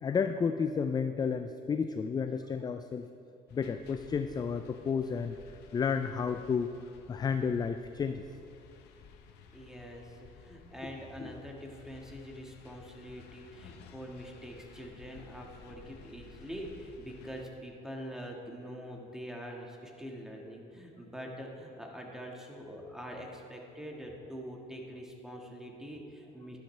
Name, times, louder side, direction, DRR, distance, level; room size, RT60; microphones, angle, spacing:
voice 1, 0.0-3.1 3.5-5.4 5.7-6.7 7.1-8.2 11.2-11.3, left 6 dB, 25° left, 9 dB, 0.3 m, -31 dB
sound 1, 3.5-17.5, left 6 dB, 80° left, 0.8 m, -55 dB
voice 2, 9.5-26.6, equal, 5° right, 0 dB, 1.5 m, -44 dB
12.0 x 11.0 x 3.3 m, 2.6 s
cardioid pair, 110°, 17 cm